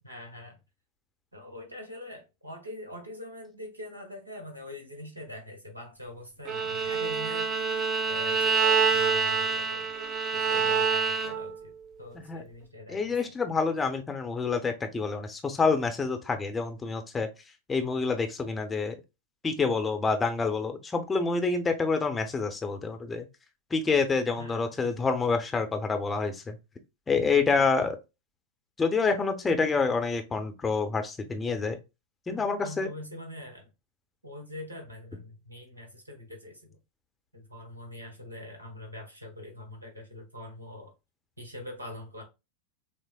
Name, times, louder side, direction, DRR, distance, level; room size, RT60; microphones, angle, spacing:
voice 1, 0.0-0.6 1.3-7.5 8.0-9.9 10.3-11.7 12.0-13.2 24.4-24.7 32.3-33.7 34.2-36.8 37.3-40.9 41.4-42.2, left 1 dB, 80° right, 1.3 m, -43 dB
Bowed string instrument, 6.5-11.6, right 5 dB, 30° right, 0.6 m, -26 dB
voice 2, 12.9-17.3 17.7-19.0 19.4-23.3 23.7-26.6 27.1-28.0 28.8-31.8 32.3-32.9, left 4 dB, 15° left, 0.7 m, -27 dB
6.0 x 2.0 x 2.3 m
figure-of-eight pair, 90°, 0 cm